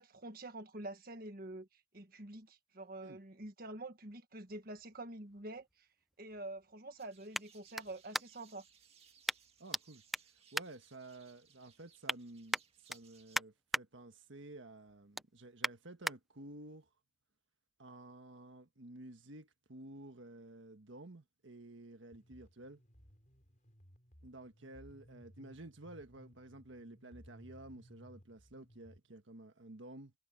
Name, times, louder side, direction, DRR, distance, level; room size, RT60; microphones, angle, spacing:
voice 1, 0.0-5.9 6.2-8.6, right 2 dB, 45° right, 1.6 m, -47 dB
sound 1, 4.5-8.6 9.2-9.8 10.1-11.4 11.8-12.2 12.5-13.8 14.3-14.5 14.9-16.2 16.7-16.8, equal, ahead, 0.5 m, -40 dB
sound 2, 7.0-13.4, right 7 dB, 30° right, 2.1 m, -66 dB
voice 2, 9.6-10.0 10.5-12.6 12.9-16.9 17.8-22.8 24.2-30.1, right 2 dB, 70° right, 1.4 m, -52 dB
sound 3, 22.1-29.0, equal, 40° left, 5.0 m, -60 dB
head